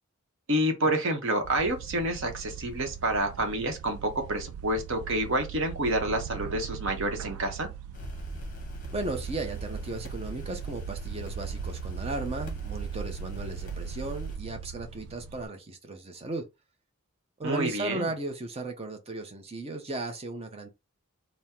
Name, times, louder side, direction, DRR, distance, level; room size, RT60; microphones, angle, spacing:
voice 1, 0.5-7.7 17.4-18.1, right 1 dB, 55° right, 0.9 m, -28 dB
sound 1, 1.4-15.5, right 9 dB, 80° right, 0.3 m, -40 dB
sound 2, 7.9-14.4, equal, 35° left, 0.9 m, -41 dB
voice 2, 8.9-16.5 17.4-20.7, right 2 dB, 25° right, 0.6 m, -36 dB
3.5 x 2.1 x 4.3 m
head